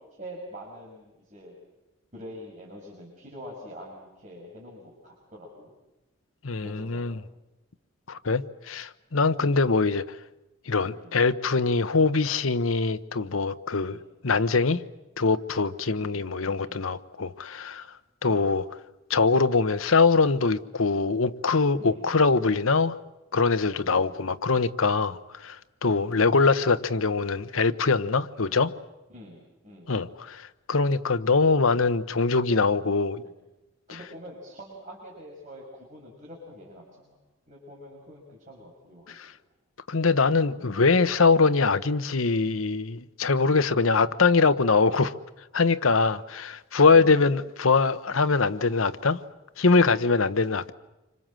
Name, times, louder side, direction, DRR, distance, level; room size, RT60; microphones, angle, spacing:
voice 1, 0.1-1.5 2.1-5.7 6.6-7.2 9.4-9.6 11.0-11.2 13.7-14.0 16.0-16.2 16.6-16.8 18.2-18.5 21.8-22.1 23.8-24.2 25.9-26.2 29.1-29.9 33.9-37.2 37.5-39.4 46.9-47.1, equal, 40° right, 6.1 m, -45 dB
voice 2, 6.4-7.1 8.1-10.2 10.7-14.0 14.2-14.8 15.2-17.9 18.2-18.7 19.1-23.0 23.3-28.7 29.9-33.2 39.1-39.3 39.9-45.1 45.5-49.2 49.6-50.7, left 4 dB, 90° left, 1.0 m, -23 dB
27.5 x 25.5 x 7.6 m
head